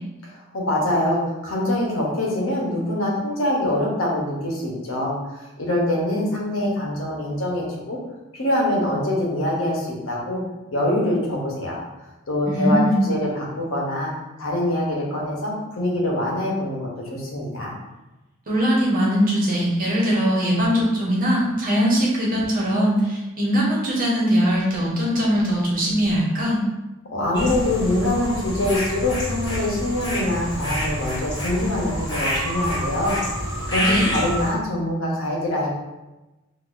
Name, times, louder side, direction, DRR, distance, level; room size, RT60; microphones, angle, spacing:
voice 1, 0.2-8.0 8.3-10.4 10.7-11.8 12.3-14.1 14.4-17.7 27.1-33.2 33.7-35.7, left 1 dB, 80° left, -3 dB, 0.9 m, -24 dB
voice 2, 12.4-13.0 18.5-26.6 33.8-34.1, equal, 45° right, -5 dB, 1.1 m, -21 dB
sound 1, 27.3-34.5, equal, 20° left, 1.3 m, -27 dB
3.9 x 2.5 x 2.5 m, 1.0 s
head